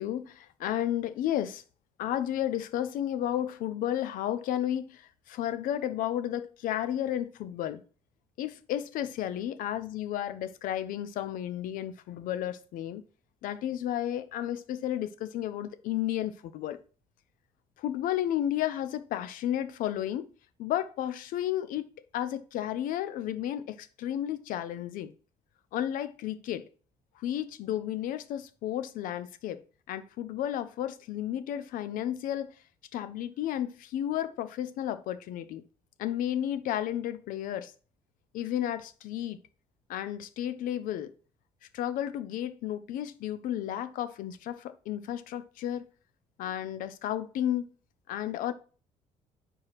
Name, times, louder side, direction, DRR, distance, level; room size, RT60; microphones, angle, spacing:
voice 1, 0.0-1.6 2.0-7.8 8.4-13.0 13.4-16.8 17.8-20.3 20.6-25.1 25.7-26.6 27.2-29.6 29.9-32.6 32.9-35.6 36.0-37.7 38.3-39.4 39.9-41.1 41.7-45.8 46.4-47.6 48.1-48.5, left 11 dB, 75° left, 0.6 m, -32 dB
5.0 x 4.6 x 5.7 m
cardioid pair, 100°, 14 cm